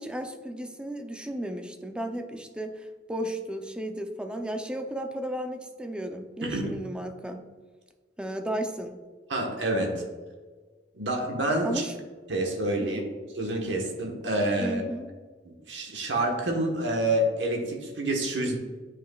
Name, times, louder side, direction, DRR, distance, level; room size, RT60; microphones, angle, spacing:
voice 1, 0.0-7.4 8.2-9.0 11.6-11.9 12.8-13.0 14.6-15.1, right 1 dB, 5° right, 5 dB, 0.5 m, -34 dB
voice 2, 9.3-10.0 10.9-11.8 12.3-13.0 13.3-14.8 15.4-18.6, right 1 dB, 70° right, 1 dB, 1.2 m, -28 dB
9.0 x 5.1 x 2.3 m, 1.4 s
head